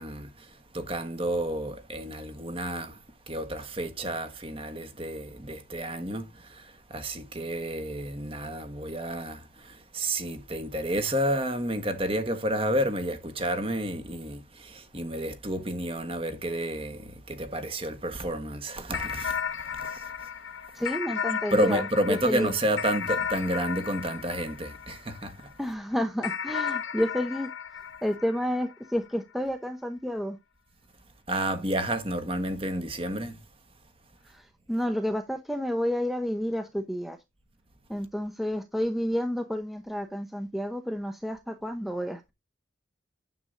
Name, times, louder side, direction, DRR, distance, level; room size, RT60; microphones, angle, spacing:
voice 1, 0.0-20.3 21.5-25.5 31.3-33.4, right 1 dB, 30° right, 1.3 m, -31 dB
sound 1, 18.9-25.5 26.2-29.0, left 7 dB, 80° left, 0.8 m, -34 dB
voice 2, 20.7-22.5 25.6-27.5 28.0-30.4 34.3-37.2 37.9-42.3, equal, ahead, 0.7 m, -30 dB
9.4 x 7.7 x 2.6 m
head